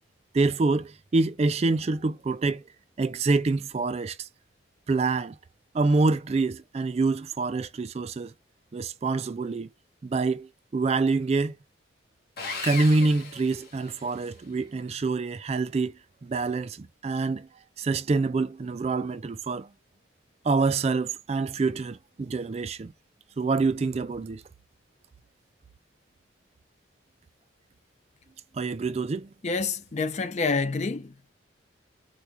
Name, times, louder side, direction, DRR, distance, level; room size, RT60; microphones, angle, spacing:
voice 1, 0.3-2.6 3.0-4.3 4.9-5.4 5.7-8.3 8.7-9.7 10.0-11.6 12.6-17.5 17.8-19.7 20.4-22.9 23.4-24.4 28.5-29.3, right 3 dB, 30° right, 0.3 m, -26 dB
Sawing, 12.4-14.3, left 4 dB, 50° left, 1.2 m, -36 dB
voice 2, 29.4-31.1, left 4 dB, 35° left, 0.4 m, -27 dB
4.7 x 2.3 x 2.7 m
head